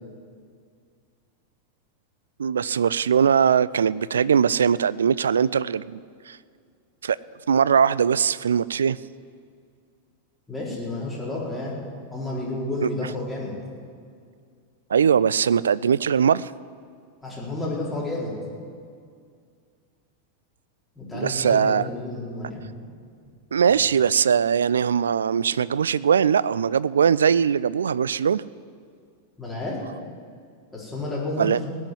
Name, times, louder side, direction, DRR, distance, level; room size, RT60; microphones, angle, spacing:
voice 1, 2.4-6.4 7.0-7.2 7.5-9.0 12.8-12.9 14.9-16.5 21.1-21.9 23.5-28.4 31.4-31.6, right 7 dB, 70° right, 20 dB, 0.3 m, -21 dB
voice 2, 10.5-11.7 12.1-13.5 17.2-18.3 21.0-22.7 29.4-29.8 30.7-31.5, left 2 dB, 5° left, -7 dB, 4.2 m, -30 dB
18.5 x 6.4 x 9.8 m, 2.2 s
figure-of-eight pair, 90°, 0 cm